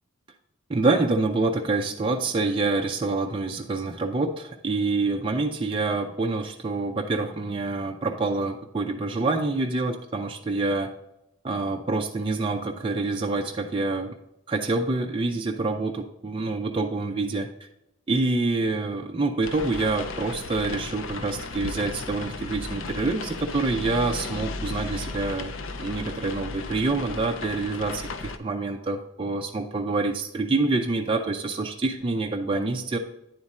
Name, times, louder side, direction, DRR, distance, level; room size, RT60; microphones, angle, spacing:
voice 1, 0.7-10.9 11.4-14.2 14.5-17.7 18.1-25.5 25.8-33.0, right 3 dB, 25° right, 2 dB, 0.4 m, -26 dB
sound 1, 19.4-28.4, left 3 dB, 65° left, 0.5 m, -35 dB
9.6 x 4.2 x 3.6 m, 0.86 s
head